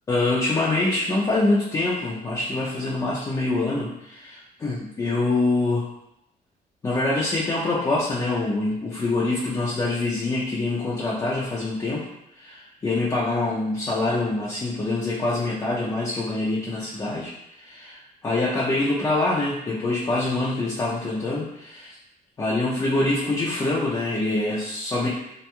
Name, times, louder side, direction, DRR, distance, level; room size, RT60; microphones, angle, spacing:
voice 1, 0.1-5.9 6.8-12.1 12.4-22.0 22.4-25.1, left 2 dB, 25° left, -5 dB, 0.4 m, -25 dB
2.9 x 2.4 x 2.2 m, 0.84 s
cardioid pair, 110°, 15 cm